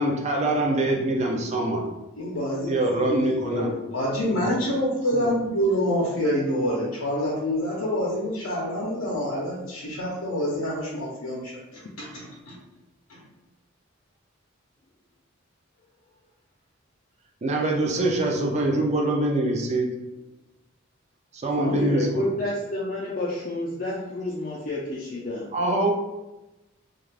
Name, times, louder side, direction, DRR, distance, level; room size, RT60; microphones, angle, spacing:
voice 1, 0.0-1.8 2.7-3.8 4.3-4.5 5.1-5.3 17.4-19.9 21.3-22.3 25.5-25.9, right 1 dB, 30° right, 1 dB, 0.4 m, -24 dB
voice 2, 2.2-3.2 3.9-12.5, equal, 85° left, -4 dB, 0.6 m, -27 dB
voice 3, 3.4-4.1 21.6-25.5, left 2 dB, 40° left, -5 dB, 0.4 m, -30 dB
2.4 x 2.4 x 3.2 m, 1.0 s
head